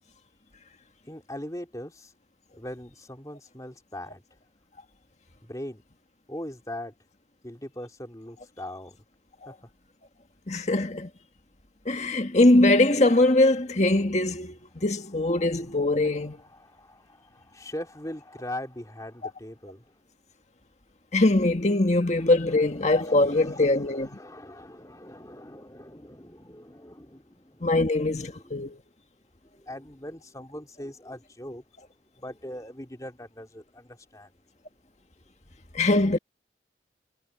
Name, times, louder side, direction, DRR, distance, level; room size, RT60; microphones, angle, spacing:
voice 1, 1.1-2.1 2.6-4.2 5.4-5.8 6.3-6.9 7.4-9.0 9.5-9.6 16.4-19.8 22.8-27.8 28.2-28.5 29.4-31.6 32.2-34.3, left 1 dB, 20° left, 3.0 m, -41 dB
voice 2, 10.5-11.1 11.9-16.4 21.1-24.2 27.6-28.8 35.7-36.2, left 2 dB, 40° left, 1.8 m, -22 dB
head